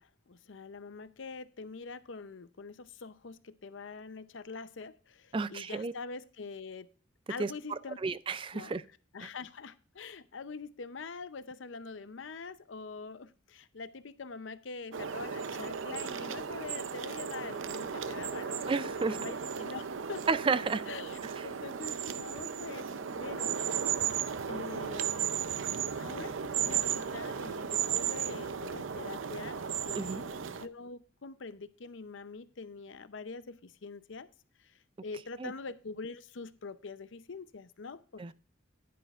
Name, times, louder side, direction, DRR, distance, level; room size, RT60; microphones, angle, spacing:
voice 1, 0.0-6.9 7.3-8.0 8.5-20.2 20.9-23.6 24.5-25.1 26.0-34.3 34.6-34.7 35.0-38.3, left 4 dB, 75° left, 13 dB, 0.6 m, -44 dB
voice 2, 5.3-5.9 7.4-7.5 8.0-8.8 18.7-19.2 20.3-20.8 30.0-30.2 35.4-35.5 38.2-38.3, right 4 dB, 25° right, 16 dB, 0.3 m, -31 dB
sound 1, 14.9-30.7, right 7 dB, 80° right, 0.6 m, -35 dB
10.5 x 10.0 x 2.4 m, 0.39 s
head